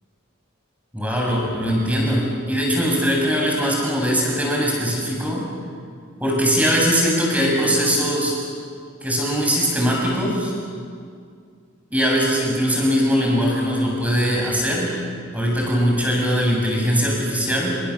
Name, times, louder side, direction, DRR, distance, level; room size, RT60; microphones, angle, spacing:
voice 1, 0.9-5.4 6.2-8.4 9.0-10.5 11.9-14.9 15.3-17.8, equal, 5° right, -2 dB, 7.4 m, -21 dB
29.5 x 27.0 x 7.3 m, 2.1 s
head